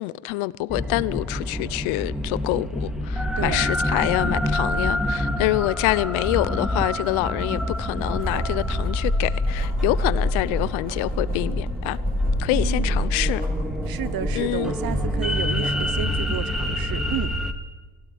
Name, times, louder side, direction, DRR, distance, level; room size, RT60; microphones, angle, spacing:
voice 1, 0.0-12.0 12.4-13.4 14.3-14.7, left 19 dB, 90° left, 1.0 m, -26 dB
sound 1, 0.7-17.5, left 1 dB, ahead, 2.2 m, -26 dB
voice 2, 3.4-3.7 12.5-13.1 13.9-17.3, right 11 dB, 50° right, 1.2 m, -31 dB
Writing, 6.7-16.1, equal, 20° right, 7.3 m, -41 dB
26.5 x 17.0 x 9.4 m
cardioid pair, 115°, 46 cm